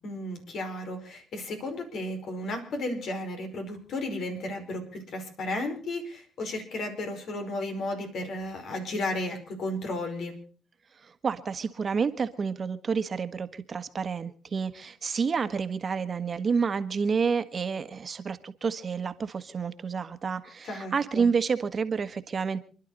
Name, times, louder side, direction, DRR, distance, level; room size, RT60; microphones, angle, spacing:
voice 1, 0.0-10.4 20.6-21.3, left 1 dB, 70° left, 5 dB, 5.0 m, -34 dB
voice 2, 11.0-22.6, right 5 dB, 40° right, 10 dB, 1.5 m, -29 dB
28.0 x 11.5 x 4.1 m, 0.40 s
cardioid pair, 90°, 0 cm